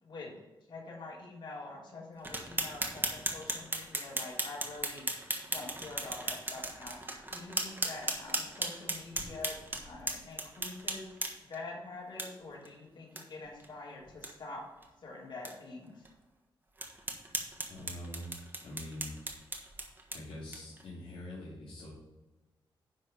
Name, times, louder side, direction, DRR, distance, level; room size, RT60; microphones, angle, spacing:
voice 1, 0.0-0.3 0.7-5.0 5.5-7.0 7.3-11.1 11.5-14.6 15.0-16.1, left 3 dB, 60° left, -4 dB, 3.2 m, -45 dB
sound 1, 2.2-11.6 12.2-12.3 12.6-12.7 13.1-13.2 13.6-13.7 14.1-14.3 14.8-14.9 15.4-15.5 16.0-16.1 16.8-20.8, right 2 dB, 20° right, 1.3 m, -37 dB
voice 2, 17.7-18.3 18.6-19.1 20.1-21.9, left 1 dB, 85° left, -6 dB, 2.2 m, -44 dB
10.5 x 3.5 x 6.9 m, 1.1 s
wide cardioid pair, 125°, 9 cm